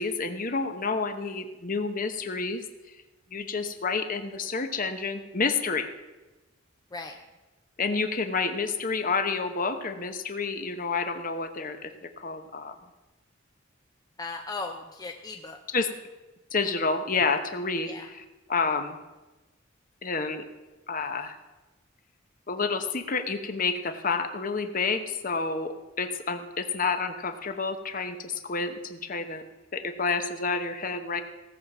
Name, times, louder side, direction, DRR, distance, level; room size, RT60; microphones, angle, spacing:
voice 1, 0.0-2.6 3.3-5.9 7.8-12.7 15.7-15.9 16.5-18.2 18.5-19.0 20.0-20.5 20.9-21.4 22.5-29.4 29.7-31.2, left 4 dB, 40° left, 8 dB, 1.0 m, -29 dB
voice 2, 14.2-15.6 17.8-18.1, left 3 dB, 20° left, 4 dB, 0.6 m, -37 dB
17.5 x 7.2 x 6.0 m, 1.1 s
head